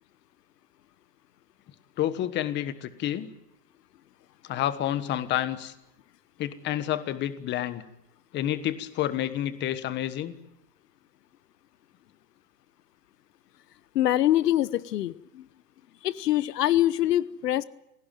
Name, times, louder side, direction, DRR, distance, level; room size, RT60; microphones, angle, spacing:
voice 1, 2.0-3.3 4.4-5.7 6.4-7.8 8.3-10.3, left 12 dB, 20° left, 13 dB, 1.4 m, -29 dB
voice 2, 13.9-15.4 16.0-17.6, left 13 dB, 70° left, 17 dB, 1.1 m, -24 dB
27.5 x 18.0 x 9.2 m, 0.85 s
hypercardioid pair, 145°, 49 cm